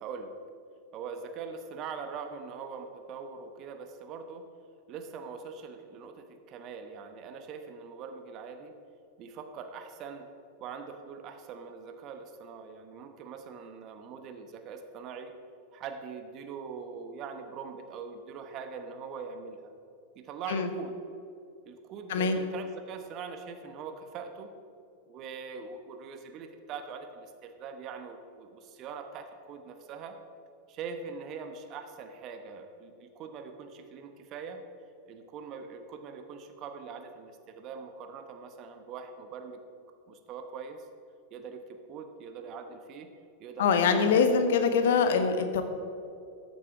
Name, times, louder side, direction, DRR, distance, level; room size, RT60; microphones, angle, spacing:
voice 1, 0.0-0.3 0.9-4.4 4.9-8.7 9.2-10.3 10.6-15.4 15.7-19.7 20.2-20.9 21.6-24.5 25.1-30.2 30.7-34.6 35.1-39.6 40.1-40.9 41.3-43.1 43.4-44.7, right 5 dB, 35° right, 7 dB, 1.0 m, -42 dB
voice 2, 43.6-45.6, left 5 dB, 55° left, 8 dB, 1.1 m, -24 dB
13.5 x 8.4 x 4.9 m, 2.6 s
figure-of-eight pair, 90°, 0 cm